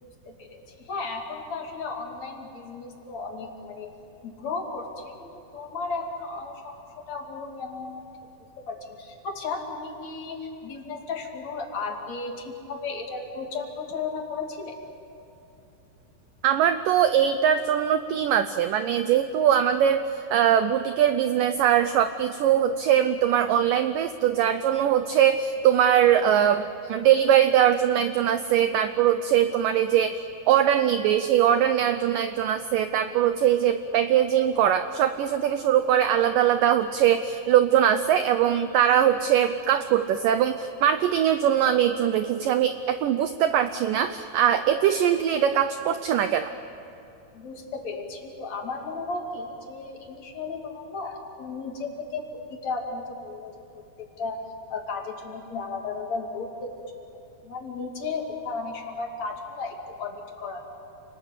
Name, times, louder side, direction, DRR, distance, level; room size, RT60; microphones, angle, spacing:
voice 1, 0.0-3.9 4.2-6.8 7.1-8.0 8.6-14.8 47.3-53.8 54.2-54.4 54.7-56.7 57.4-60.7, left 4 dB, 45° left, 1 dB, 3.6 m, -34 dB
voice 2, 16.4-30.2 30.5-46.5, right 10 dB, 80° right, 10 dB, 1.9 m, -22 dB
29.5 x 20.5 x 8.4 m, 2.8 s
omnidirectional pair, 4.7 m